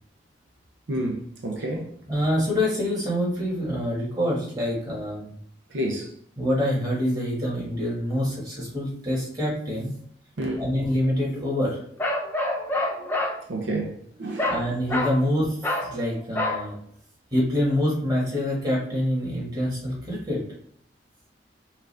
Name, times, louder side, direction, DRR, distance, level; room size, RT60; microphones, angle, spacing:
voice 1, 0.9-1.9 5.7-6.1 10.4-10.7 13.0-13.1 13.5-14.6, right 1 dB, 75° right, 0.7 m, -30 dB
voice 2, 2.1-5.3 6.4-9.9 10.6-11.8 14.5-16.7 17.3-20.4, equal, 20° right, 1.6 m, -26 dB
Bark, 12.0-13.4 14.4-14.6 14.9-15.2 15.6-15.9 16.4-16.6, left 1 dB, 10° left, 0.7 m, -26 dB
5.9 x 2.5 x 3.4 m
head